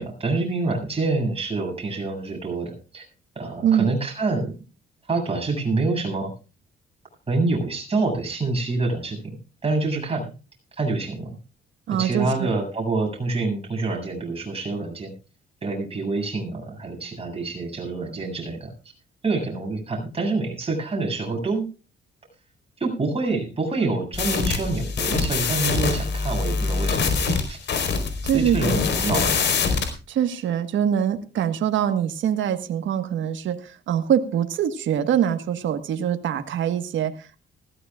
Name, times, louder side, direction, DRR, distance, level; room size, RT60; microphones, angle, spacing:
voice 1, 0.0-3.0 3.3-4.6 5.1-6.3 7.3-9.3 9.6-10.2 10.8-11.4 11.9-15.1 15.6-18.7 19.2-21.7 22.8-27.6 28.3-29.3, right 3 dB, 30° right, 0 dB, 7.8 m, -26 dB
voice 2, 11.9-12.5 28.2-28.8 30.1-37.4, right 9 dB, 75° right, 8 dB, 1.5 m, -24 dB
sound 1, 24.1-29.9, left 5 dB, 65° left, 4.5 m, -24 dB
20.0 x 16.0 x 2.5 m, 0.33 s
cardioid pair, 90°, 20 cm